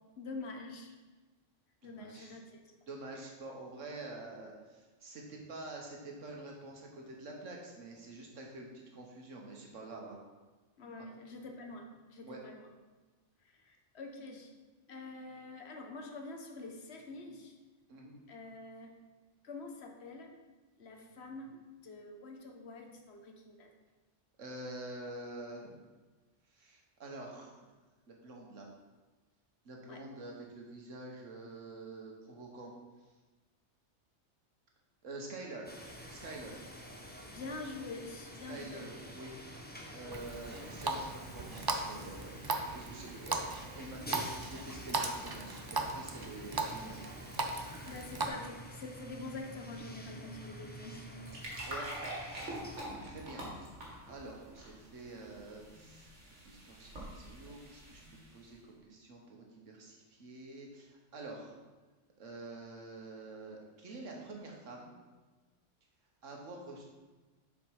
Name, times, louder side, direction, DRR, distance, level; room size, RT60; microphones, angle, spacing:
voice 1, 0.2-0.9 1.8-2.6 10.8-12.7 13.4-14.5 14.9-17.5 18.3-18.9 19.4-20.3 20.8-23.7 29.9-30.0 37.3-38.8 47.9-51.3, left 3 dB, 60° left, 3 dB, 1.2 m, -46 dB
voice 2, 1.8-2.4 2.9-10.2 11.0-11.1 12.2-12.4 17.9-18.1 24.4-25.8 26.5-27.5 28.1-28.7 29.7-32.7 35.0-35.7 36.1-36.6 38.5-39.3 39.9-47.0 51.3-51.4 51.6-51.9 53.0-53.5 54.1-56.1 56.4-58.0 58.3-61.6 62.2-65.0 66.2-66.8, right 2 dB, 90° right, 0 dB, 1.6 m, -47 dB
sound 1, 35.7-52.8, equal, 10° left, 0.6 m, -49 dB
Water tap faucet, 40.1-48.3, right 3 dB, 35° right, 0.3 m, -38 dB
sound 2, 51.2-58.5, right 1 dB, 70° right, 2.3 m, -45 dB
7.4 x 5.0 x 4.8 m, 1.2 s
omnidirectional pair, 1.2 m